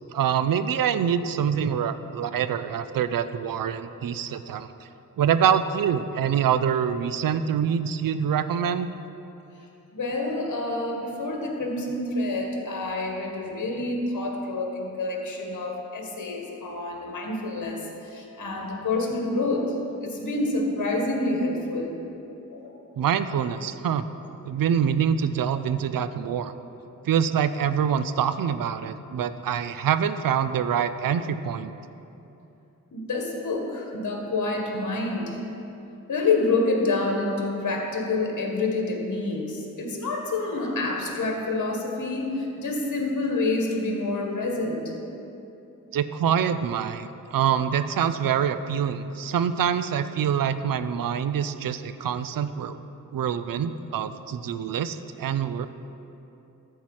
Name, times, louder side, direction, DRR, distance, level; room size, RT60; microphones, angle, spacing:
voice 1, 0.1-4.7 5.2-8.9 23.0-24.1 24.5-26.5 27.0-31.7 45.9-52.8 53.1-55.7, right 8 dB, 80° right, 12 dB, 0.5 m, -25 dB
voice 2, 9.9-19.7 20.0-22.0 22.5-22.8 27.0-27.1 32.9-35.4 36.1-44.9, left 2 dB, 60° left, 1 dB, 1.8 m, -28 dB
13.5 x 4.6 x 7.4 m, 2.9 s
wide cardioid pair, 100°, 33 cm